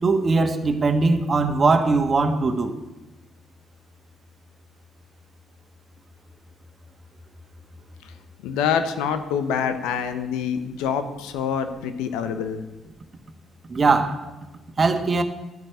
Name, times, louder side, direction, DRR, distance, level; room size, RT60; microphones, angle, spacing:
voice 1, 0.0-2.7 13.7-14.3 14.8-15.2, right 3 dB, 35° right, 1.6 m, -20 dB
voice 2, 8.4-12.6, left 7 dB, 75° left, 1.1 m, -26 dB
11.0 x 9.0 x 9.1 m
hypercardioid pair, 50°, 0 cm